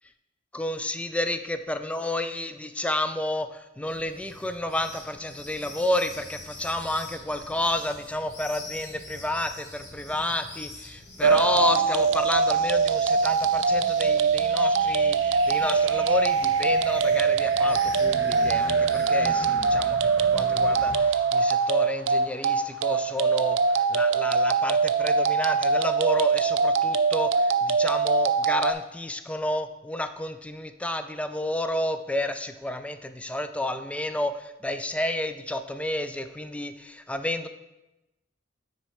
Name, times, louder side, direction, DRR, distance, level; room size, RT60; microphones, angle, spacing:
voice 1, 0.5-37.5, left 1 dB, 5° left, 9 dB, 0.3 m, -31 dB
sound 1, 3.8-21.0, left 1 dB, 65° left, 1.8 m, -43 dB
sound 2, 11.2-28.7, right 5 dB, 85° right, 0.5 m, -23 dB
9.3 x 4.2 x 4.8 m, 0.99 s
head